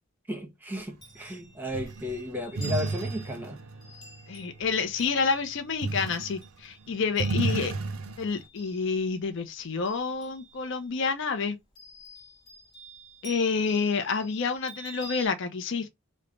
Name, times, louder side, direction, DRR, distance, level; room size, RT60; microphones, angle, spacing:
voice 1, 0.3-3.6, equal, 10° right, 0.8 m, -34 dB
Chime, 0.7-9.2 9.6-10.9 11.7-15.3, right 2 dB, 20° left, 1.1 m, -49 dB
sound 1, 1.7-4.9 5.8-6.5 6.9-8.4, right 3 dB, 85° right, 0.5 m, -32 dB
voice 2, 4.3-7.7 8.2-11.6 13.2-15.9, left 5 dB, 60° left, 0.5 m, -28 dB
3.2 x 2.1 x 3.7 m
head